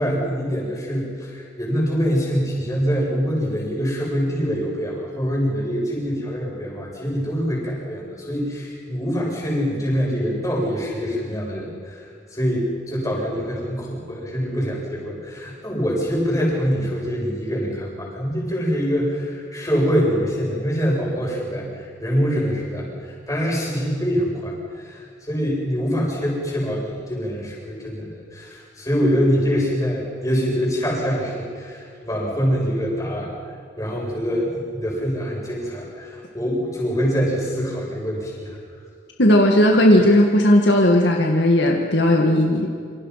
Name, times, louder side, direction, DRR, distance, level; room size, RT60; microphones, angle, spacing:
voice 1, 0.0-33.3 33.8-38.6, equal, 15° left, -3 dB, 7.6 m, -24 dB
voice 2, 39.2-42.7, left 1 dB, 70° left, 1 dB, 2.0 m, -16 dB
27.5 x 26.5 x 5.9 m, 2.2 s
head